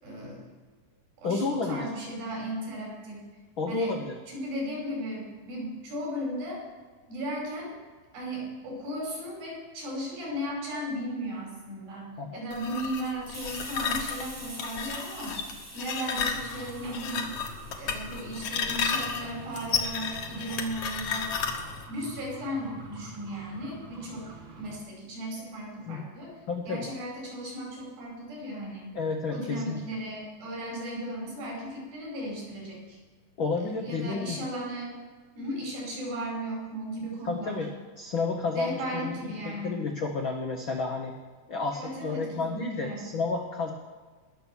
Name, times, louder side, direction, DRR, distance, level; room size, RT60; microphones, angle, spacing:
voice 1, 0.0-0.4 1.2-3.3 3.7-4.0 4.3-6.6 7.1-7.8 8.1-15.4 15.7-17.3 17.8-21.3 21.9-26.3 26.7-29.0 29.3-33.0 33.8-35.0 35.4-37.6 38.5-39.8 41.7-43.1, equal, 80° right, -2 dB, 7.2 m, -36 dB
voice 2, 1.2-1.9 3.6-4.1 12.2-12.4 25.9-26.0 26.5-26.9 28.9-29.8 33.4-34.4 37.2-37.7 38.0-39.2 39.4-41.1 41.5-43.7, left 4 dB, 90° left, 2 dB, 1.1 m, -31 dB
sound 1, 12.5-21.8, left 6 dB, 60° left, 1.7 m, -33 dB
Hiss, 13.3-20.7, right 1 dB, 5° right, 1.3 m, -47 dB
sound 2, 16.3-24.8, right 1 dB, 45° right, 1.8 m, -46 dB
20.5 x 7.1 x 6.2 m, 1.4 s
omnidirectional pair, 4.1 m